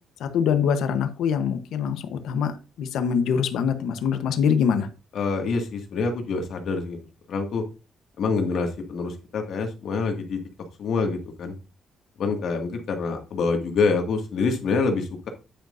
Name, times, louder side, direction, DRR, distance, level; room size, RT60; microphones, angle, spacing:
voice 1, 0.2-4.9, left 7 dB, 85° left, 8 dB, 1.0 m, -24 dB
voice 2, 5.1-7.0 7.3-7.6 8.2-10.4 10.8-11.5 12.2-15.3, left 4 dB, 60° left, 4 dB, 2.0 m, -26 dB
9.1 x 9.0 x 2.6 m, 0.31 s
cardioid pair, 140°, 0 cm